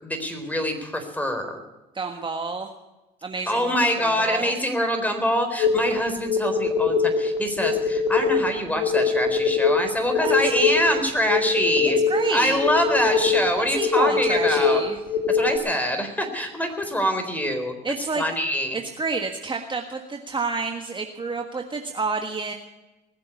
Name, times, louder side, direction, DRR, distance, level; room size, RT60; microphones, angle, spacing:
voice 1, 0.0-1.6 3.5-12.0 12.3-14.8 15.3-17.8 18.2-18.8, equal, 10° left, 6 dB, 4.1 m, -25 dB
voice 2, 1.9-2.7 3.2-4.5 10.2-10.5 11.8-12.6 13.6-15.0 17.8-18.2 18.7-22.5, right 4 dB, 25° right, 4 dB, 1.5 m, -29 dB
sound 1, 5.6-15.6, left 5 dB, 85° left, 2.4 m, -23 dB
20.5 x 7.6 x 8.5 m, 1.0 s
supercardioid pair, 85°, 20 cm